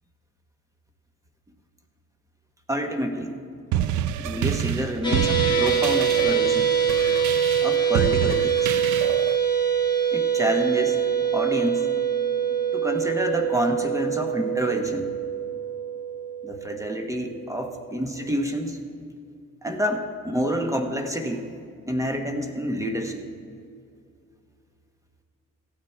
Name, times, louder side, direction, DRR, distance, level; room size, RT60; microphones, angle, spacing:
voice 1, 2.7-3.3 4.2-6.7 7.6-8.5 10.1-11.0 11.3-11.9 12.7-15.1 16.4-18.8 19.6-21.5 21.9-23.2, equal, 10° right, 5 dB, 1.3 m, -28 dB
sound 1, 3.7-9.4, right 11 dB, 80° right, 0.5 m, -28 dB
sound 2, 5.0-17.4, right 7 dB, 15° left, 2.4 m, -24 dB
14.5 x 8.8 x 4.6 m, 2.4 s
cardioid pair, 90°, 30 cm